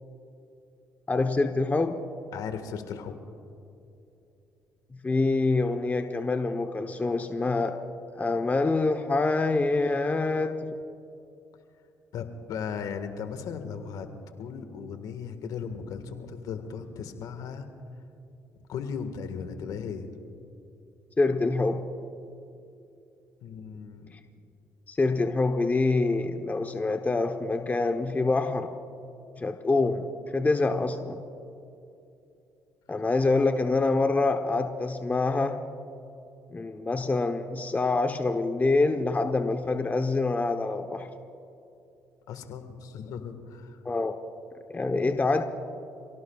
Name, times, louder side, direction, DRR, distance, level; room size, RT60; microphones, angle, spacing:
voice 1, 1.1-2.0 5.0-7.8 8.2-10.7 21.2-21.8 24.9-28.7 29.4-30.1 30.3-31.2 32.9-35.6 36.5-41.1 43.8-44.2 44.7-45.4, left 3 dB, 25° left, 6 dB, 0.9 m, -26 dB
voice 2, 2.3-3.2 12.1-14.1 14.4-17.7 18.7-20.1 23.4-24.1 42.3-43.8, left 6 dB, 70° left, 8 dB, 1.6 m, -37 dB
28.5 x 17.5 x 2.4 m, 2.8 s
supercardioid pair, 65°, 7 cm